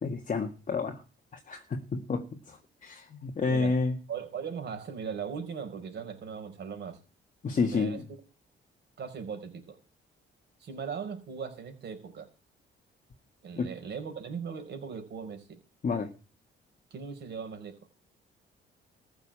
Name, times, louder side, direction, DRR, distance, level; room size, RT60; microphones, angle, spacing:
voice 1, 0.0-1.0 1.5-4.0 7.4-8.0 13.6-13.7 15.8-16.1, left 4 dB, 40° left, 3 dB, 1.7 m, -30 dB
voice 2, 3.5-3.8 4.1-7.0 7.6-8.0 9.0-9.8 10.6-12.3 13.4-15.6 16.9-17.8, right 6 dB, 60° right, 5 dB, 5.0 m, -39 dB
14.5 x 6.6 x 8.8 m, 0.34 s
cardioid pair, 90°, 20 cm